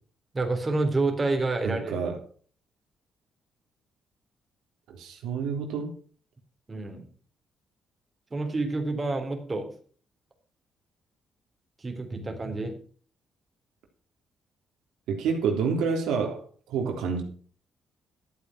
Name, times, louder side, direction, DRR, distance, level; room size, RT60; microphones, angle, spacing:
voice 1, 0.3-2.0 6.7-7.1 8.3-9.7 11.8-12.8, right 3 dB, 25° right, 4 dB, 3.4 m, -28 dB
voice 2, 1.6-2.2 4.9-5.9 15.1-17.2, right 5 dB, 85° right, 3 dB, 3.1 m, -28 dB
12.5 x 8.4 x 6.0 m, 0.44 s
cardioid pair, 90°, 0 cm